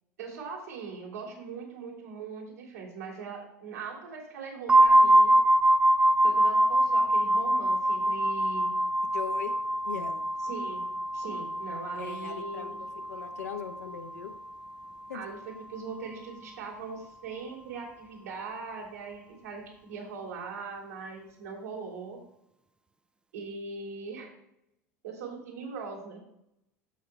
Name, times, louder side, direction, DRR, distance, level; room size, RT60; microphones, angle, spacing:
voice 1, 0.2-5.4 6.2-8.7 10.4-10.8 11.1-12.8 15.1-22.2 23.3-24.3 25.0-26.2, right 5 dB, 75° right, -3 dB, 2.9 m, -40 dB
sound 1, 4.7-14.3, right 1 dB, 10° right, 0.4 m, -24 dB
voice 2, 9.1-9.5 9.8-10.2 12.0-14.3 15.1-15.2, left 7 dB, 75° left, 5 dB, 1.0 m, -39 dB
15.5 x 5.7 x 2.2 m, 0.80 s
figure-of-eight pair, 80°, 8 cm